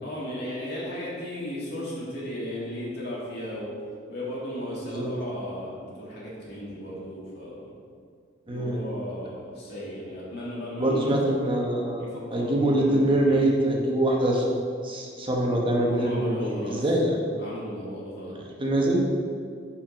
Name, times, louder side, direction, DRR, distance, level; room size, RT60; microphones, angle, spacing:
voice 1, 0.0-3.7 4.1-7.7 8.5-11.2 12.0-13.0 13.3-13.5 15.9-17.0 17.4-18.4, equal, 60° left, -6 dB, 1.8 m, -35 dB
voice 2, 8.5-8.8 10.8-12.0 12.3-14.4 14.8-17.2 18.6-19.0, right 1 dB, 30° right, -2 dB, 1.1 m, -24 dB
5.6 x 5.1 x 5.0 m, 2.2 s
head